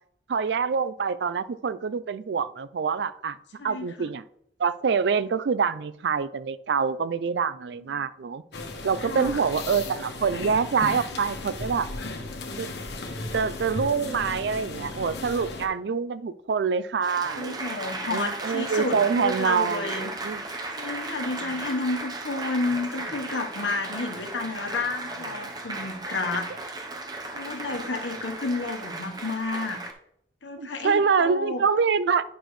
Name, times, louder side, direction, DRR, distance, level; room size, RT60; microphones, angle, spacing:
voice 1, 0.3-3.4 3.6-4.2 4.6-8.4 8.8-11.9 12.6-12.7 13.3-17.6 18.1-20.4 30.6-32.2, right 6 dB, 70° right, 0.4 m, -25 dB
voice 2, 3.6-4.1 9.0-9.4 17.4-20.1 20.7-26.7 27.3-29.8 30.4-31.6, left 3 dB, 85° left, 1.1 m, -31 dB
sound 1, 8.5-15.7, left 2 dB, 70° left, 1.1 m, -35 dB
Applause, 17.0-29.9, right 2 dB, 20° right, 0.8 m, -35 dB
10.0 x 6.0 x 3.1 m
head